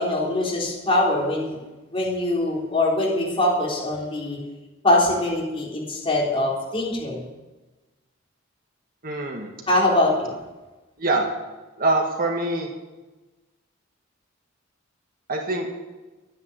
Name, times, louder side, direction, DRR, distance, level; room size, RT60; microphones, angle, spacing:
voice 1, 0.0-1.6 1.9-4.4 4.8-7.2 9.7-10.3, left 1 dB, 25° left, -4 dB, 3.8 m, -22 dB
voice 2, 9.0-9.5 11.0-11.3 11.8-12.7 15.3-15.8, right 2 dB, 45° right, 2 dB, 1.8 m, -24 dB
10.5 x 9.8 x 9.0 m, 1.2 s
head